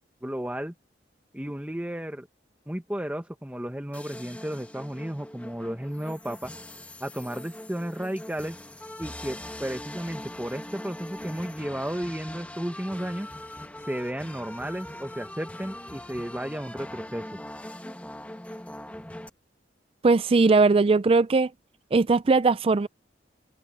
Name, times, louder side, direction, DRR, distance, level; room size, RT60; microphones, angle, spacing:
voice 1, 0.2-0.7 1.3-2.3 2.7-6.5 7.0-8.6 9.0-13.3 13.9-17.4, equal, 10° right, 1.1 m, -33 dB
sound 1, 3.9-19.3, left 1 dB, 10° left, 1.5 m, -42 dB
voice 2, 20.0-21.5 21.9-22.9, right 3 dB, 30° right, 0.4 m, -19 dB
head